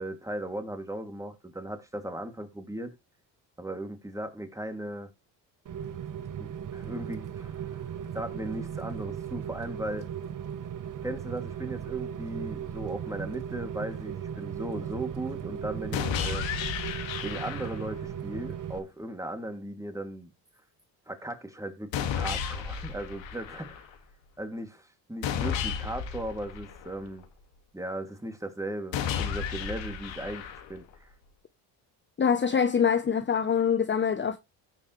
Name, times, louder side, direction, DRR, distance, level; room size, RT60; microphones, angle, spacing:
voice 1, 0.0-2.9 3.6-5.1 6.4-7.8 8.1-10.1 11.0-16.5 17.2-20.3 21.1-23.9 24.4-27.3 27.7-31.1, right 1 dB, 5° right, 2.5 m, -37 dB
Rain, 5.7-18.8, right 8 dB, 40° right, 1.0 m, -37 dB
sound 1, 15.9-18.0 21.9-23.9 25.2-27.2 28.9-30.9, left 8 dB, 70° left, 2.1 m, -33 dB
voice 2, 32.2-34.4, left 7 dB, 25° left, 0.8 m, -24 dB
16.0 x 5.4 x 3.2 m
supercardioid pair, 75°, 47 cm